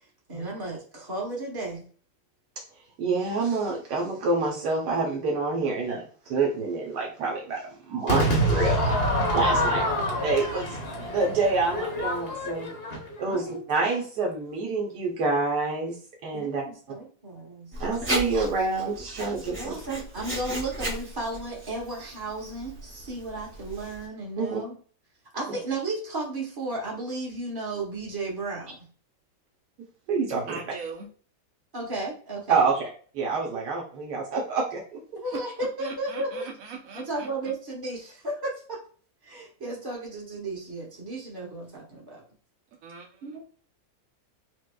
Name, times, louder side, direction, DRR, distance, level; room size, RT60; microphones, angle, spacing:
voice 1, 0.3-1.9 9.5-10.2 13.3-13.6 16.3-17.7 19.5-24.7 25.3-28.8 31.7-32.7 35.2-36.5 36.9-38.8 39.2-42.2 43.2-43.4, right 2 dB, 15° right, -3 dB, 1.0 m, -34 dB
voice 2, 3.0-7.6 7.9-8.9 9.3-9.8 10.2-10.8 11.1-12.7 13.2-16.0 16.2-16.6 17.8-19.8 24.4-24.6 30.1-30.6 32.5-32.9 33.1-34.8, right 3 dB, 75° right, -1 dB, 1.3 m, -27 dB
Crowd / Fireworks, 8.1-13.3, equal, 45° left, 0.9 m, -26 dB
Writing, 17.7-24.1, right 1 dB, 35° right, 1.4 m, -35 dB
voice 3, 30.5-31.1 35.3-35.4 35.8-37.3 42.8-43.1, right 5 dB, 60° right, 0 dB, 1.0 m, -39 dB
6.1 x 2.2 x 2.2 m, 0.43 s
omnidirectional pair, 1.8 m